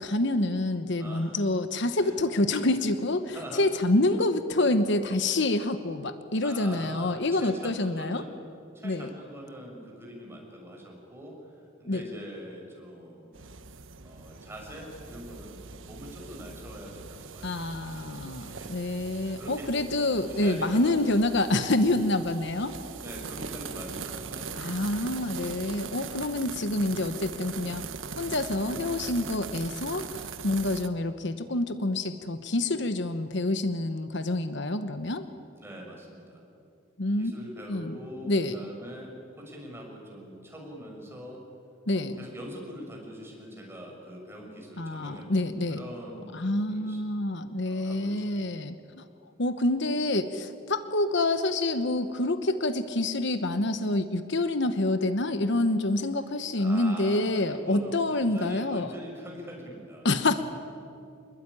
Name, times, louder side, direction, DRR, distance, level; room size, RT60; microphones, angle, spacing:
voice 1, 0.0-8.2 8.8-9.1 11.8-12.0 17.4-22.7 24.6-27.8 28.2-35.2 37.0-37.3 37.7-38.0 38.2-38.6 41.9-42.2 44.8-45.9 46.3-49.0 49.4-58.9 60.0-60.4, left 2 dB, 60° left, 10 dB, 1.1 m, -27 dB
voice 2, 1.0-1.4 1.9-2.1 3.3-4.0 6.4-8.3 8.7-13.5 14.0-18.7 19.2-19.7 20.0-20.9 22.2-22.3 23.0-24.9 30.4-30.6 35.6-36.4 37.2-41.4 41.9-45.4 45.7-47.0 47.6-48.3 56.6-60.3, equal, 10° right, -1 dB, 6.5 m, -43 dB
sound 1, 13.3-30.9, right 5 dB, 70° right, 1.2 m, -41 dB
26.5 x 21.5 x 9.9 m, 2.5 s
head